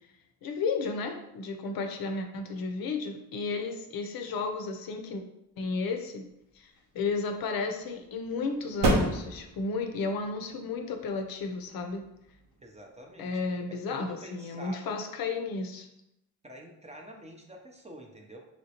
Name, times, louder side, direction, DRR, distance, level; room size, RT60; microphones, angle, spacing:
voice 1, 0.4-5.2 5.6-6.3 6.6-12.0 13.2-15.9, left 4 dB, 65° left, 5 dB, 0.6 m, -33 dB
sound 1, 6.3-13.5, right 1 dB, 80° right, 0.9 m, -34 dB
voice 2, 12.6-13.4 13.7-14.9 16.4-18.4, right 1 dB, 15° right, 1 dB, 0.6 m, -47 dB
3.1 x 2.8 x 2.8 m, 0.84 s
supercardioid pair, 65°, 39 cm